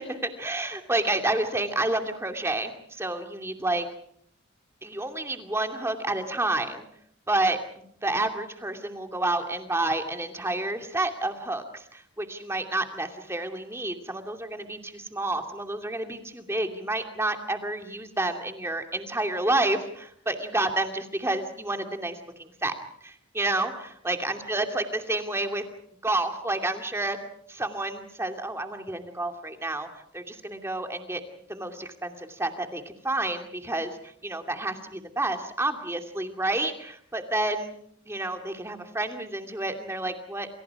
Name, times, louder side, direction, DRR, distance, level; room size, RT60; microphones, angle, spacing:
voice 1, 0.0-3.8 4.8-6.8 7.3-22.7 23.0-25.6 26.0-27.2 27.5-29.9 30.1-31.2 31.5-37.7 38.1-40.5, right 2 dB, 15° right, 4 dB, 2.6 m, -29 dB
28.5 x 28.5 x 4.9 m, 0.65 s
head